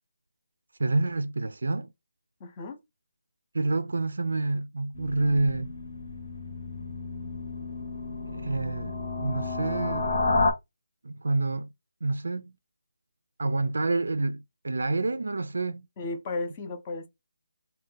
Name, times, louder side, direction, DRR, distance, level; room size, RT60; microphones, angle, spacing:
voice 1, 0.8-1.9 3.5-5.7 8.3-10.2 11.0-11.7 12.0-12.5 13.4-15.9, right 2 dB, 70° right, 0.3 m, -28 dB
voice 2, 2.4-2.8 16.0-17.1, left 3 dB, 15° left, 0.5 m, -34 dB
sound 1, 4.9-10.5, left 3 dB, 50° left, 0.9 m, -31 dB
2.5 x 2.2 x 3.8 m
hypercardioid pair, 175°, 0 cm